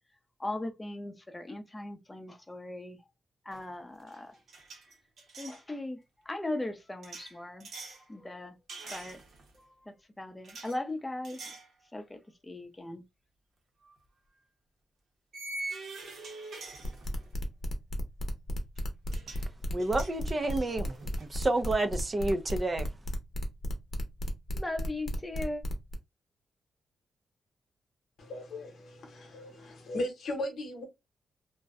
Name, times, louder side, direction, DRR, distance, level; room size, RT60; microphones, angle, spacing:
voice 1, 0.4-3.1 3.4-4.4 5.4-8.6 8.8-9.2 9.5-11.6 11.9-13.0 24.5-25.6, left 2 dB, 15° left, 0.6 m, -39 dB
sound 1, 3.5-3.7 4.0-5.6 7.0-8.0 8.7-9.6 10.4-10.8 11.2-11.7 12.2-12.3 13.8-14.0 15.3-17.4 18.8-18.9 19.1-19.5 19.8-21.3, right 2 dB, 75° right, 0.8 m, -44 dB
sound 2, 16.8-25.9, equal, 50° left, 0.7 m, -34 dB
voice 2, 19.7-20.9 21.2-22.9, right 2 dB, 35° right, 0.4 m, -29 dB
voice 3, 28.2-30.8, left 1 dB, 80° left, 0.8 m, -37 dB
2.5 x 2.1 x 2.3 m
cardioid pair, 85°, 0 cm